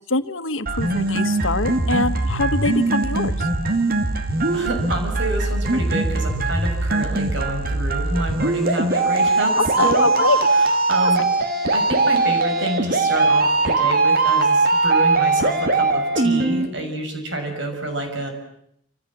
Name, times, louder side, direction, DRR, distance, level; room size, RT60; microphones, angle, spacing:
voice 1, 0.1-3.5 9.6-10.5 11.0-11.1, left 3 dB, 85° left, 10 dB, 1.5 m, -23 dB
sound 1, 0.7-16.7, right 3 dB, 50° right, 2.5 m, -20 dB
voice 2, 4.5-10.1 10.9-11.2 11.7-18.3, right 1 dB, 65° right, 4 dB, 6.6 m, -28 dB
27.5 x 27.0 x 7.6 m, 0.75 s
head